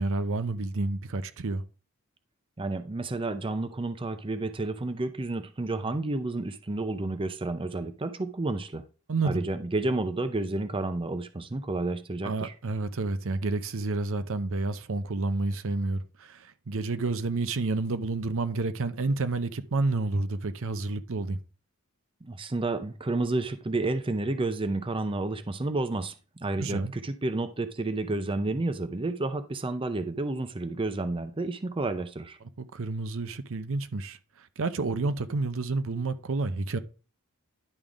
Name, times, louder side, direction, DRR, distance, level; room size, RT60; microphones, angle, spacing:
voice 1, 0.0-1.6 9.1-9.4 12.2-21.4 26.6-26.9 32.6-36.8, right 3 dB, 65° right, 0.7 m, -30 dB
voice 2, 2.6-8.8 9.2-12.5 22.2-26.1 26.4-32.4, right 2 dB, 25° right, 0.6 m, -30 dB
11.0 x 3.7 x 5.0 m
head